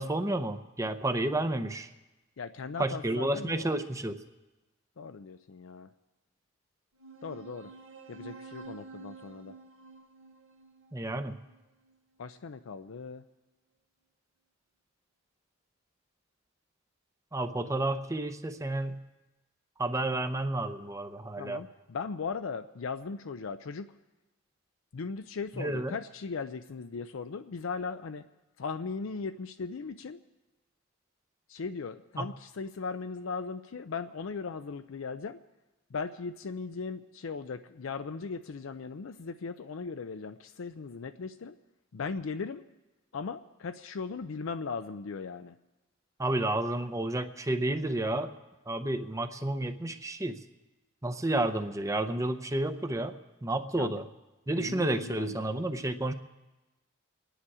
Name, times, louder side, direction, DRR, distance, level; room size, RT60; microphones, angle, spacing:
voice 1, 0.0-1.9 2.8-4.1 10.9-11.4 17.3-19.0 19.8-21.6 25.6-26.0 32.2-32.3 46.2-48.3 48.7-50.4 51.0-54.1 54.5-56.1, right 1 dB, 15° right, 9 dB, 0.7 m, -31 dB
voice 2, 2.4-3.7 5.0-5.9 7.2-7.7 8.1-9.5 12.2-13.2 21.4-23.9 24.9-28.3 28.6-30.2 31.5-35.4 35.9-41.6 41.9-42.6 43.1-45.5 53.7-54.0 54.6-55.4, left 5 dB, 80° left, 9 dB, 0.5 m, -38 dB
sound 1, 7.0-12.0, right 4 dB, 85° right, 1.4 m, -49 dB
26.0 x 10.0 x 4.9 m, 1.1 s
head